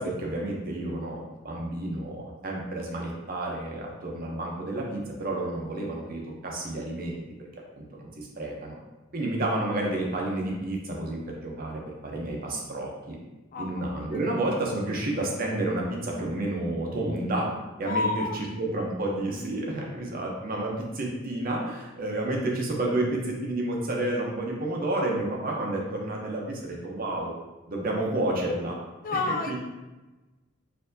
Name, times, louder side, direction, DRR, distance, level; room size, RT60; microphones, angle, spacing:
voice 1, 0.0-7.2 7.7-8.8 9.1-13.2 13.6-17.5 17.8-18.0 18.3-27.3 27.7-28.8 29.2-29.6, right 1 dB, 45° right, -1 dB, 0.7 m, -30 dB
voice 2, 17.8-18.4 29.0-29.5, left 3 dB, 45° left, 4 dB, 0.4 m, -29 dB
4.2 x 2.7 x 2.7 m, 1.1 s
head